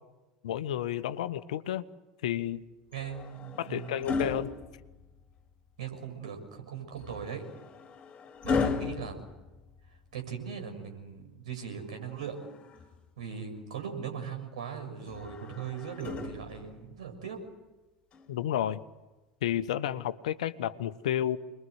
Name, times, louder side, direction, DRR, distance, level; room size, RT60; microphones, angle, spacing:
voice 1, 0.4-1.8 2.2-2.6 3.6-4.5 18.3-18.8 19.4-21.4, left 11 dB, 65° left, 13 dB, 1.2 m, -31 dB
sound 1, 2.9-5.4 7.0-10.2 11.9-13.1 15.1-16.9 18.1-18.3, left 4 dB, 30° left, 3.6 m, -36 dB
voice 2, 2.9-4.2 5.8-7.4 8.4-9.2 10.1-12.4 13.2-17.4, right 7 dB, 70° right, 5 dB, 6.9 m, -39 dB
28.5 x 21.5 x 8.2 m, 1.1 s
figure-of-eight pair, 75°, 4 cm